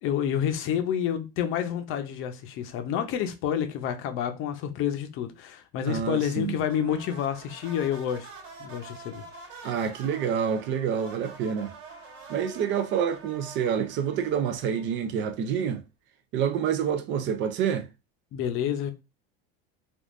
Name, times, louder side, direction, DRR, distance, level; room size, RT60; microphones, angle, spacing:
voice 1, 0.0-8.3 8.6-9.2 18.3-18.9, left 9 dB, 45° left, 0.6 m, -29 dB
voice 2, 5.9-6.6 9.6-11.7 12.3-15.8 16.3-17.9, right 8 dB, 40° right, 0.4 m, -27 dB
sound 1, 6.7-15.1, right 3 dB, 75° right, 1.5 m, -46 dB
3.6 x 2.4 x 2.5 m
supercardioid pair, 125°, 29 cm